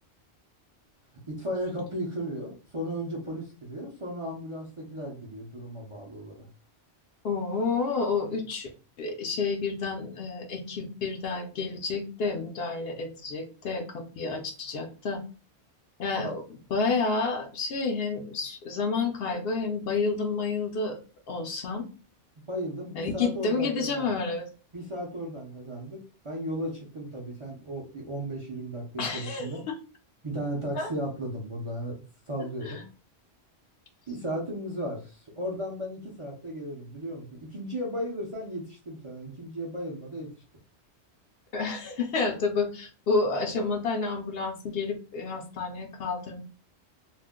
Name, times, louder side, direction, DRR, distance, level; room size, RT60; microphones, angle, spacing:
voice 1, 1.3-6.5 16.2-16.3 22.5-24.1 24.7-29.6 30.2-32.9 34.1-40.3, equal, 40° right, -2 dB, 0.5 m, -35 dB
voice 2, 7.2-8.7 9.0-15.2 16.0-16.4 16.7-21.0 21.3-21.9 23.0-24.5 29.0-29.8 30.8-30.9 32.6-32.8 41.5-46.4, left 4 dB, 65° left, 4 dB, 0.7 m, -30 dB
2.4 x 2.1 x 3.5 m, 0.35 s
omnidirectional pair, 1.2 m